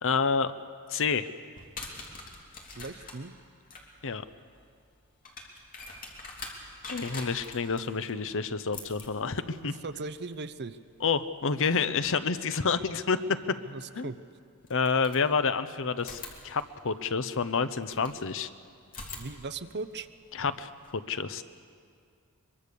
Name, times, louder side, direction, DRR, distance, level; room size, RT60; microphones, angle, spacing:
voice 1, 0.0-0.5 0.9-1.3 4.0-4.2 6.9-9.8 11.0-13.2 14.0-14.1 14.7-18.5 20.3-20.7 21.1-21.4, left 5 dB, 60° left, 12 dB, 0.8 m, -28 dB
sound 1, 1.5-12.3 13.8-13.9 14.6-15.6 16.0-18.3 18.8-20.9, left 3 dB, 40° left, 3.0 m, -46 dB
voice 2, 2.8-3.3 7.1-7.3 9.6-10.8 13.7-14.2 19.1-20.1, right 3 dB, 50° right, 12 dB, 0.8 m, -38 dB
23.5 x 23.0 x 6.9 m, 2.2 s
head